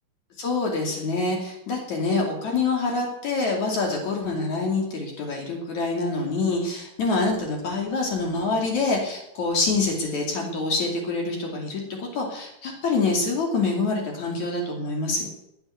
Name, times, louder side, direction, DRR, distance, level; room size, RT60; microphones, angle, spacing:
voice 1, 0.4-15.3, left 3 dB, 60° left, 0 dB, 3.9 m, -26 dB
20.5 x 8.9 x 7.0 m, 0.81 s
omnidirectional pair, 3.9 m